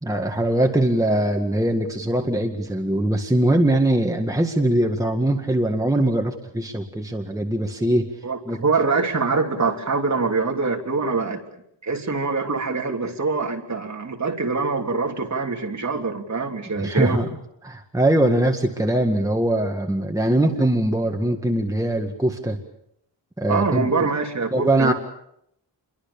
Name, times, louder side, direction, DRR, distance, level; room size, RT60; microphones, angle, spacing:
voice 1, 0.0-8.1 8.5-8.6 16.8-17.3 17.6-22.6 23.4-23.9 24.5-24.9, right 1 dB, 10° right, 2 dB, 1.9 m, -21 dB
voice 2, 8.2-11.4 11.8-17.2 23.5-24.9, right 4 dB, 40° right, 2 dB, 3.3 m, -24 dB
29.0 x 23.0 x 7.1 m, 0.74 s
wide cardioid pair, 160°, 44 cm